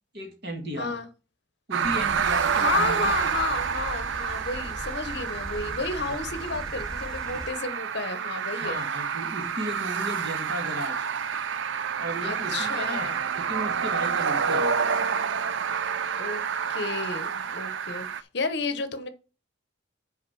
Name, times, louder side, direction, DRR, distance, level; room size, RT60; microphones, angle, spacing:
voice 1, 0.1-1.0 1.7-3.3 6.0-6.2 8.5-11.0 12.0-13.1 13.3-14.7, equal, 55° right, 2.1 m, -35 dB
voice 2, 0.8-1.1 2.5-8.8 12.2-13.2 16.2-16.4 16.7-19.1, left 3 dB, 60° left, 0.9 m, -32 dB
sound 1, 1.7-18.2, right 6 dB, 70° right, 0.5 m, -28 dB
sound 2, 1.8-7.5, equal, 5° left, 1.6 m, -40 dB
6.6 x 4.9 x 6.1 m
head